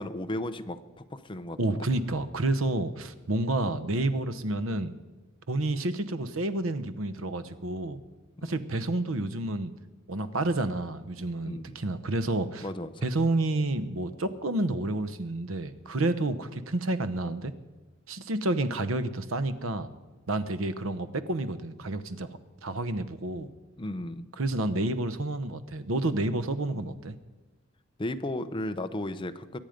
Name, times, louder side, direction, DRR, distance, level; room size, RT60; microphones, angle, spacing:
voice 1, 0.0-1.9 8.4-8.5 11.4-11.8 12.6-13.1 23.8-24.3 26.7-27.0 28.0-29.6, left 1 dB, 25° left, 9 dB, 0.7 m, -35 dB
voice 2, 1.6-4.9 5.5-8.0 8.4-9.7 10.1-12.7 13.0-17.5 18.1-19.9 20.3-22.3 22.6-23.5 24.4-27.2, right 2 dB, 85° right, 12 dB, 0.9 m, -29 dB
23.0 x 9.1 x 5.2 m, 1.2 s
head